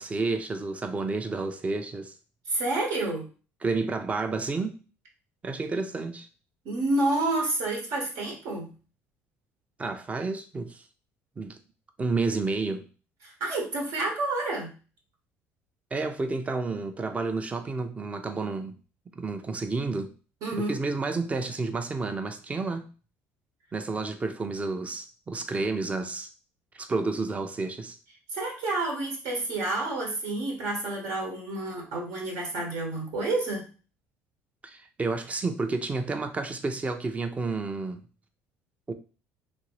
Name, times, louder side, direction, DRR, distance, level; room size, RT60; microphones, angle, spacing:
voice 1, 0.0-2.1 3.6-4.8 5.4-6.3 9.8-10.8 11.4-11.6 12.0-12.9 15.9-18.8 19.2-20.1 20.5-22.9 23.7-26.3 26.7-28.0 34.6-38.0 38.9-39.0, right 3 dB, 25° right, 0.5 m, -30 dB
voice 2, 2.5-3.3 6.6-8.7 13.2-14.7 20.4-20.8 28.3-33.6, right 2 dB, 70° right, 1.3 m, -29 dB
2.9 x 2.6 x 3.0 m
supercardioid pair, 90°, 6 cm